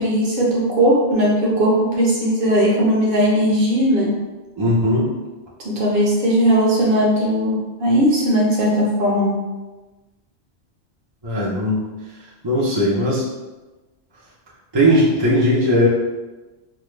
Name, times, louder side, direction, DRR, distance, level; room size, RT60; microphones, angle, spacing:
voice 1, 0.0-4.1 5.6-9.4, equal, 55° right, -4 dB, 1.0 m, -18 dB
voice 2, 4.6-5.1 11.2-11.8 12.4-13.2 14.7-15.9, equal, 30° right, -7 dB, 0.6 m, -18 dB
3.5 x 2.2 x 3.1 m, 1.1 s
omnidirectional pair, 1.1 m